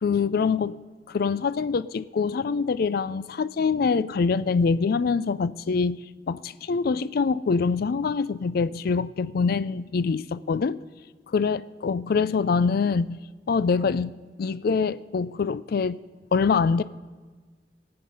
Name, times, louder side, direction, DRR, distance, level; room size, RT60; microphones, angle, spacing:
voice 1, 0.0-10.8 11.3-13.2 13.5-16.0 16.3-16.8, left 5 dB, 55° left, 0.4 m, -25 dB
22.0 x 7.8 x 5.4 m
head